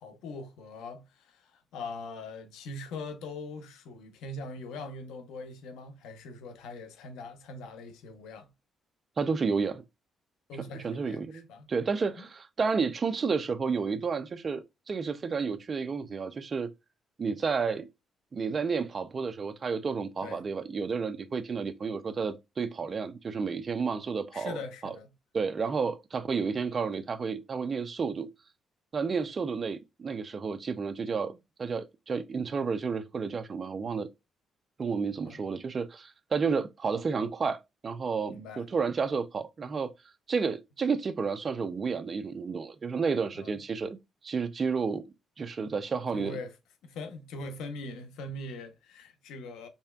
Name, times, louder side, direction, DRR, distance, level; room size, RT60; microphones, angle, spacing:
voice 1, 0.0-8.5 10.5-11.7 12.2-12.3 20.2-20.4 24.3-25.1 35.2-35.4 38.3-38.7 43.3-43.5 46.1-46.6 46.8-49.7, left 2 dB, 90° left, 0.8 m, -42 dB
voice 2, 9.2-9.8 10.8-16.7 17.2-17.9 18.3-25.0 25.3-28.3 28.9-34.1 34.8-37.6 37.8-39.9 40.3-44.0 44.2-45.0 45.4-46.4, right 5 dB, 40° right, 0.5 m, -31 dB
4.2 x 3.3 x 2.3 m
cardioid pair, 90°, 0 cm